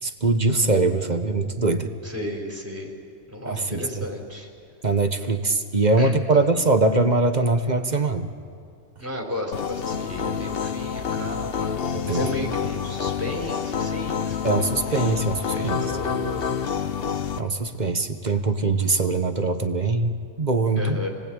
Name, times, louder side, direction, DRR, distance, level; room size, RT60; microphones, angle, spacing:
voice 1, 0.0-1.9 3.4-4.0 4.8-8.3 11.9-12.3 14.4-15.9 17.4-21.0, right 3 dB, 35° right, 7 dB, 1.3 m, -22 dB
voice 2, 2.0-2.9 3.3-4.5 6.0-6.4 9.0-11.8 12.1-15.1 15.4-16.5 20.8-21.1, left 1 dB, 10° right, -1 dB, 4.4 m, -33 dB
sound 1, 9.5-17.4, left 7 dB, 50° left, 0.9 m, -28 dB
29.5 x 19.5 x 8.9 m, 2.4 s
omnidirectional pair, 1.5 m